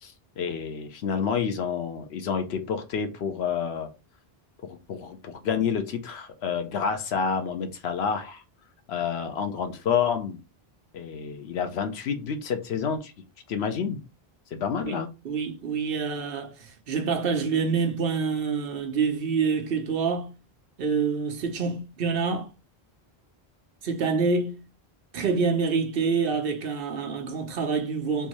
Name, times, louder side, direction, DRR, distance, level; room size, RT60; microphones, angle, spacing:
voice 1, 0.0-3.9 4.6-8.4 8.9-10.4 10.9-13.1 13.5-14.0 14.5-15.1, left 6 dB, 85° left, 0.9 m, -29 dB
voice 2, 15.2-20.3 20.8-22.5 23.8-24.6 25.1-28.3, right 5 dB, 65° right, 0.9 m, -27 dB
3.5 x 2.6 x 2.9 m
omnidirectional pair, 1.0 m